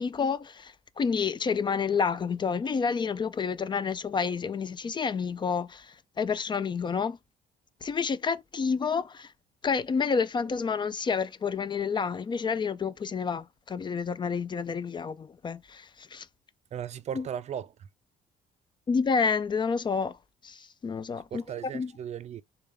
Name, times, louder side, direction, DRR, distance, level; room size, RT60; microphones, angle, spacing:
voice 1, 0.0-7.2 7.8-9.3 9.6-16.3 17.1-17.3 18.9-20.2 20.4-21.4 21.7-21.9, left 5 dB, 25° left, 0.4 m, -29 dB
voice 2, 16.7-17.7 21.3-22.4, right 9 dB, 40° right, 0.4 m, -36 dB
6.7 x 2.3 x 3.4 m
cardioid pair, 110°, 17 cm